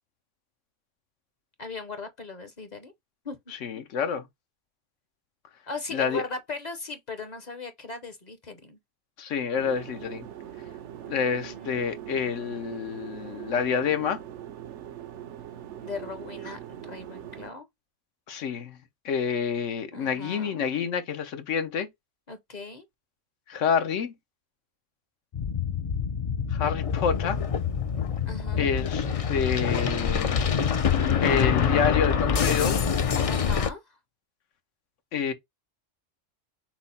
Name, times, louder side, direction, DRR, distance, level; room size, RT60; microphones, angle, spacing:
voice 1, 1.6-2.9 3.2-3.4 5.7-8.8 11.0-12.1 15.8-17.7 19.9-20.7 22.3-22.8 28.3-28.7 33.2-34.0, left 3 dB, 45° left, 0.7 m, -38 dB
voice 2, 3.6-4.3 5.9-6.2 9.2-10.3 11.1-14.2 18.3-18.8 19.0-21.9 23.5-24.1 26.5-27.4 28.6-30.5 31.2-32.8 35.1-35.3, left 6 dB, 85° left, 1.1 m, -28 dB
sound 1, 9.6-17.5, right 11 dB, 75° right, 0.9 m, -42 dB
sound 2, 25.3-33.7, left 7 dB, 60° left, 0.3 m, -25 dB
5.9 x 2.0 x 4.1 m
omnidirectional pair, 1.2 m